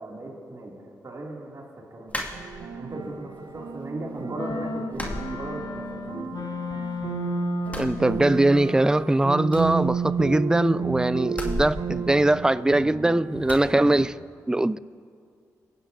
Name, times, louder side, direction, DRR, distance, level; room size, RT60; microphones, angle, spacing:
voice 1, 0.0-2.2 2.7-6.3, right 2 dB, 50° right, 2.6 m, -37 dB
sound 1, 2.1-3.0 3.4-4.1 4.3-4.5 4.9-6.1 6.3-7.2 7.6-8.7 9.0-9.1 9.4-10.6 11.3-12.9 13.4-13.7, equal, 20° left, 2.2 m, -36 dB
sound 2, 2.3-14.1, right 6 dB, 70° right, 0.8 m, -32 dB
sound 3, 4.4-8.2, left 5 dB, 65° left, 0.8 m, -34 dB
voice 2, 7.8-14.1 14.5-14.8, right 1 dB, 10° right, 0.4 m, -21 dB
24.5 x 9.8 x 2.7 m
supercardioid pair, 40°, 8 cm